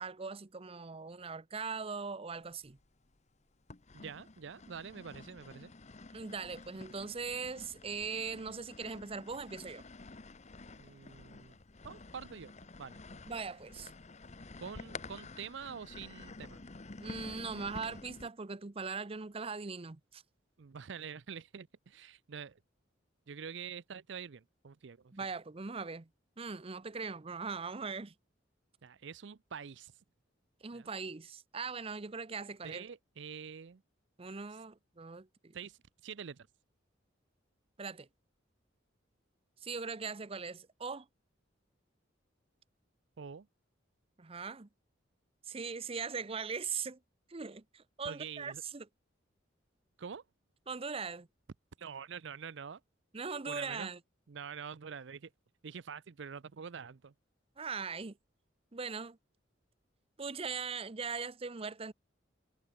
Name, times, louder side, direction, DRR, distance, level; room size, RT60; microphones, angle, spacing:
voice 1, 0.0-2.8 6.1-9.8 13.3-13.9 17.0-20.2 25.1-26.1 26.4-28.1 30.6-32.8 34.2-35.5 37.8-38.1 39.6-41.1 44.2-44.7 45.5-47.0 47.3-48.9 50.7-51.3 53.1-54.0 57.6-58.2 58.7-59.2 60.2-61.9, right 5 dB, 30° right, 0.7 m, -40 dB
sound 1, 2.5-3.1 3.7-18.3, left 3 dB, 35° left, 1.1 m, -50 dB
voice 2, 3.9-5.7 10.8-11.6 11.8-12.5 12.8-13.0 14.6-16.6 20.6-22.6 23.3-25.1 28.8-29.9 30.7-30.9 32.6-33.8 35.5-36.5 43.2-43.5 48.0-48.6 50.0-50.2 51.8-52.8 53.5-53.9 54.3-55.3 55.6-57.1, right 6 dB, 65° right, 0.5 m, -46 dB
head